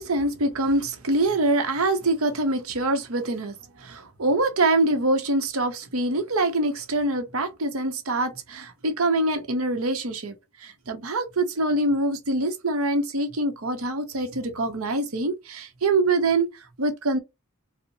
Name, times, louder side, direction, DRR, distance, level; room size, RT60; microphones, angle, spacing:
voice 1, 0.0-17.2, right 2 dB, 80° right, 0.9 m, -25 dB
4.1 x 2.1 x 2.6 m
head